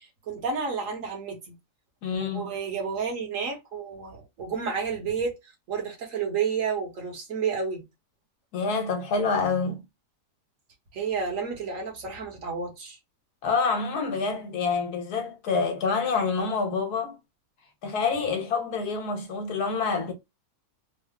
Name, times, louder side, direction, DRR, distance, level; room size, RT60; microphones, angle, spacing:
voice 1, 0.0-1.5 2.2-7.8 10.9-13.0, right 5 dB, 55° right, 1.4 m, -31 dB
voice 2, 2.0-2.4 8.5-9.8 13.4-17.2 17.8-20.1, left 4 dB, 75° left, 1.5 m, -27 dB
3.6 x 2.0 x 3.5 m
omnidirectional pair, 1.7 m